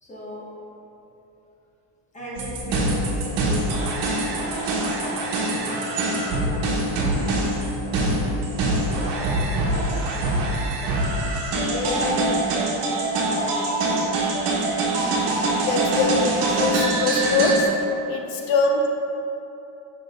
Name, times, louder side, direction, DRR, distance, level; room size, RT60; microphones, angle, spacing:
voice 1, 0.0-0.5 2.1-4.0 5.1-11.3 11.6-14.2 18.3-18.5, equal, 15° left, -6 dB, 1.4 m, -36 dB
sound 1, 2.3-17.6, right 2 dB, 65° right, 1.4 m, -24 dB
voice 2, 15.6-17.6 18.1-18.9, left 3 dB, 75° left, 3 dB, 1.0 m, -22 dB
6.8 x 6.2 x 3.7 m, 2.9 s
cardioid pair, 155°, 44 cm